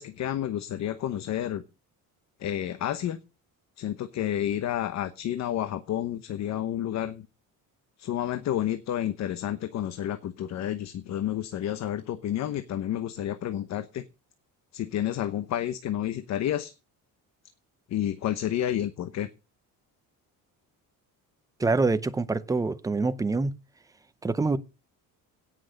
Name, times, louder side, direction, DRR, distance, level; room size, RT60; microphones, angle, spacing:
voice 1, 0.0-1.6 2.4-3.2 3.8-7.3 8.0-14.0 14.7-16.7 17.9-19.3, left 11 dB, 45° left, 1.0 m, -30 dB
voice 2, 21.6-23.5 24.2-24.6, right 3 dB, 10° right, 0.6 m, -25 dB
17.5 x 6.3 x 6.3 m
cardioid pair, 175°, 37 cm